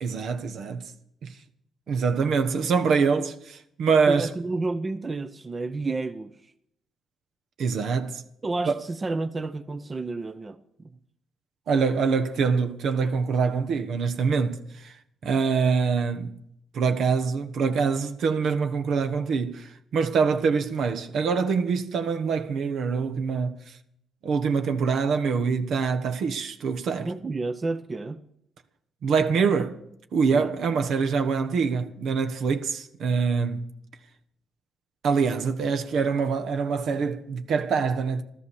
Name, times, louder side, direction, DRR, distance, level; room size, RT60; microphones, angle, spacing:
voice 1, 0.0-0.9 1.2-1.4 1.9-4.3 7.6-8.2 8.6-8.8 11.7-14.9 15.2-16.4 16.7-23.7 24.2-27.1 29.0-29.8 30.1-33.7 35.0-38.2, right 5 dB, 70° right, 1.2 m, -25 dB
voice 2, 4.1-6.3 8.4-10.9 27.0-28.2 30.3-30.5, right 3 dB, 30° right, 0.8 m, -31 dB
14.0 x 13.0 x 7.0 m
cardioid pair, 90°, 0 cm